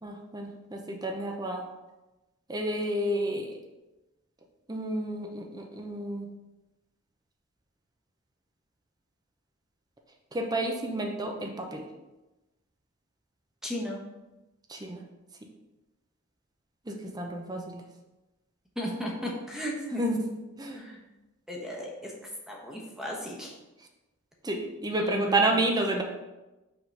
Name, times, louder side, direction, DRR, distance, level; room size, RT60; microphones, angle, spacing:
voice 1, 0.0-1.6 2.5-3.5 4.7-6.3 10.3-11.8 14.7-15.0 16.9-17.8 20.0-20.2 20.6-20.8 24.4-26.0, right 1 dB, 20° right, 2 dB, 0.6 m, -30 dB
voice 2, 13.6-14.0 18.8-20.0 20.8-21.0 21.5-22.1 22.5-23.5 25.0-25.4, equal, 5° right, -3 dB, 1.1 m, -35 dB
5.7 x 3.7 x 5.4 m, 1.0 s
head